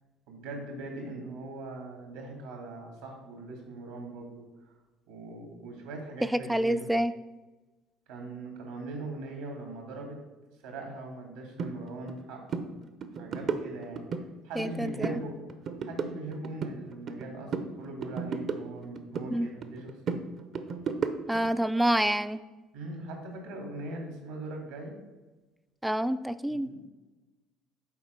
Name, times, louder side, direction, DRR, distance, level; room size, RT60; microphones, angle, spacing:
voice 1, 0.3-4.7 5.1-6.9 8.1-10.2 10.6-12.7 13.2-15.4 15.8-20.2 21.3-21.5 22.7-24.9 26.5-26.9, right 2 dB, 80° right, 2 dB, 2.1 m, -41 dB
voice 2, 6.3-7.1 14.6-15.2 19.3-19.5 21.3-22.4 25.8-26.7, right 1 dB, 5° right, 11 dB, 0.4 m, -27 dB
sound 1, 11.6-11.7 12.1-12.2 12.5-12.7 13.0-14.2 14.6-15.2 15.5-17.2 17.5-19.3 19.6-21.5, right 5 dB, 55° right, 0.7 m, -34 dB
7.3 x 4.2 x 5.2 m, 1.1 s
hypercardioid pair, 65°, 0 cm